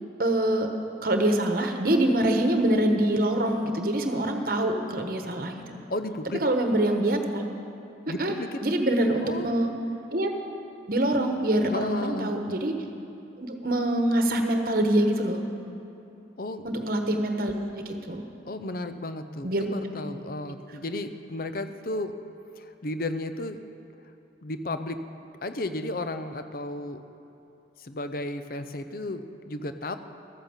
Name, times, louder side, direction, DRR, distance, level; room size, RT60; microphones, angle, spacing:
voice 1, 0.2-0.7 1.0-5.6 6.4-7.4 8.2-8.3 8.6-9.7 10.1-10.3 10.9-12.7 13.4-15.4 16.6-18.2 19.4-19.7, right 1 dB, 50° right, 4 dB, 1.1 m, -25 dB
voice 2, 5.9-6.4 8.1-8.6 9.2-9.5 11.7-12.3 16.4-16.7 18.4-22.1 22.6-23.6 24.4-25.0 25.4-27.0 27.8-30.0, left 2 dB, 50° left, 9 dB, 0.6 m, -33 dB
13.0 x 9.1 x 7.3 m, 2.8 s
head